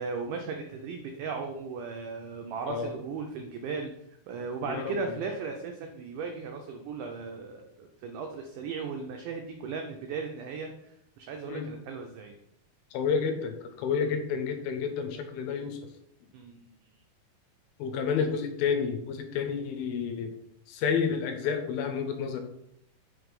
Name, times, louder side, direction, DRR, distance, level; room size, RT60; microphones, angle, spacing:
voice 1, 0.0-3.9 4.3-12.3 16.3-16.9, right 5 dB, 90° right, 3 dB, 1.8 m, -37 dB
voice 2, 4.7-5.2 11.5-11.7 12.9-15.8 17.8-20.3 20.7-22.4, left 6 dB, 80° left, 6 dB, 2.5 m, -30 dB
6.0 x 3.2 x 5.2 m, 0.77 s
omnidirectional pair, 4.3 m